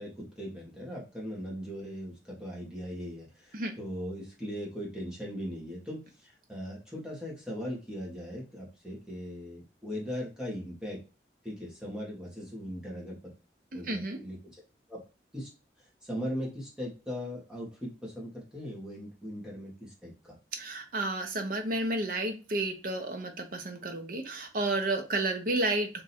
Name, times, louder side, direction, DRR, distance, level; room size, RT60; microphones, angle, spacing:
voice 1, 0.0-11.0 11.4-13.2 13.7-14.6 14.9-15.0 15.3-15.5 16.0-20.3, equal, 5° right, -5 dB, 1.5 m, -39 dB
voice 2, 13.7-14.2 20.5-26.0, right 2 dB, 50° right, 4 dB, 0.9 m, -31 dB
3.6 x 2.8 x 4.2 m, 0.31 s
head